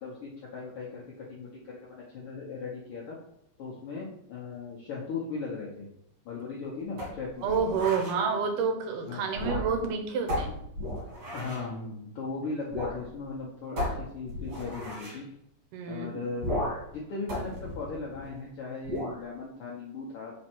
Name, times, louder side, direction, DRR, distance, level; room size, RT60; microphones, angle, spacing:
voice 1, 0.0-3.2 3.6-5.9 6.2-7.5 9.1-9.2 9.5-9.7 11.3-15.2 15.9-16.5 16.9-20.3, left 4 dB, 75° left, -4 dB, 1.2 m, -38 dB
sound 1, 7.0-8.2 9.3-9.9 10.3-11.7 12.7-13.0 13.3-13.4 13.8-15.2 16.4-16.9 17.3-18.4 18.8-19.2, left 1 dB, 55° right, 3.2 m, -34 dB
voice 2, 7.4-10.5 15.7-16.1, right 5 dB, 80° right, 4 dB, 2.4 m, -29 dB
5.3 x 4.3 x 4.4 m, 0.73 s
omnidirectional pair, 3.8 m